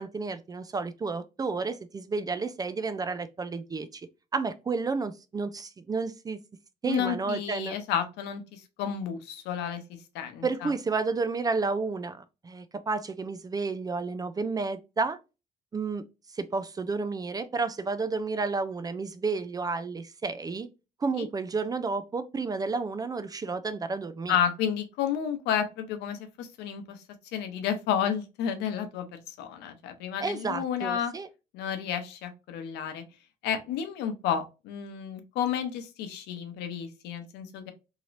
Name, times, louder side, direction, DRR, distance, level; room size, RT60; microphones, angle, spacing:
voice 1, 0.0-4.0 4.3-6.4 6.8-7.8 10.4-15.2 15.7-16.0 16.3-20.7 21.0-24.4 30.2-31.3, right 4 dB, 20° right, 0.4 m, -31 dB
voice 2, 6.8-9.8 10.1-10.7 21.2-21.3 24.3-27.0 27.3-31.1 31.5-33.0 33.4-37.7, left 8 dB, 90° left, 0.7 m, -31 dB
3.1 x 2.8 x 2.5 m
cardioid pair, 110°, 17 cm